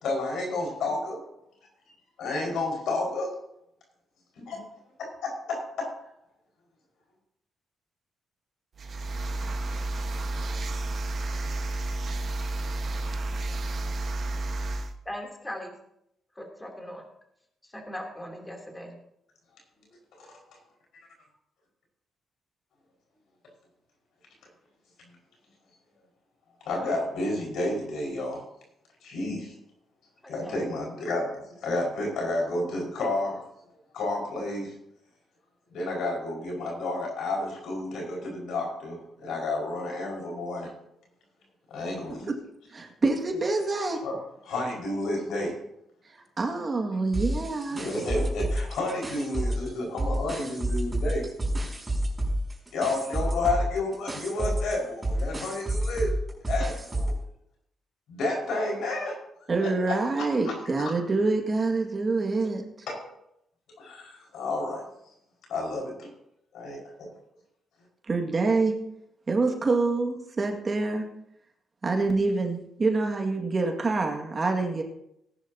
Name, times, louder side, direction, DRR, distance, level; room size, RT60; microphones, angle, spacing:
voice 1, 0.0-1.2 2.2-3.3 4.3-4.6 5.2-5.9 20.1-20.4 26.6-28.4 29.0-29.5 30.3-33.4 33.9-34.7 35.7-40.7 41.7-42.3 44.0-44.2 44.4-45.5 47.7-51.3 52.7-56.1 56.5-57.1 58.1-59.2 59.6-60.9 62.9-63.0 63.8-64.8 65.5-66.1 66.5-67.1, left 2 dB, 80° left, -1 dB, 5.1 m, -31 dB
sound 1, 8.8-14.9, right 2 dB, 55° right, 1.3 m, -31 dB
voice 2, 15.0-15.7 16.3-17.0 17.6-19.0 30.2-30.5, left 1 dB, 10° left, 2 dB, 3.1 m, -39 dB
voice 3, 42.7-44.0 46.4-47.8 59.5-62.6 68.1-68.7 69.3-71.1 71.8-74.8, right 3 dB, 35° right, 2 dB, 2.0 m, -26 dB
sound 2, 47.1-49.7 50.0-57.2, right 1 dB, 20° right, 5.6 m, -29 dB
18.5 x 11.0 x 2.8 m, 0.78 s
cardioid pair, 85°, 0 cm